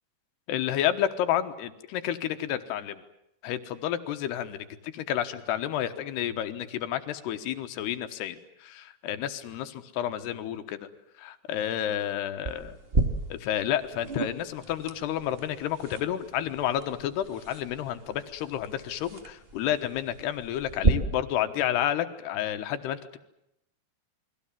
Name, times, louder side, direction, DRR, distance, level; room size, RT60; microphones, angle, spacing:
voice 1, 0.5-3.0 3.4-10.9 11.2-12.8 13.3-23.2, left 11 dB, 80° left, 9 dB, 3.3 m, -30 dB
sound 1, 12.4-20.9, right 3 dB, 55° right, 0.6 m, -33 dB
29.0 x 22.0 x 7.4 m, 0.81 s
omnidirectional pair, 4.9 m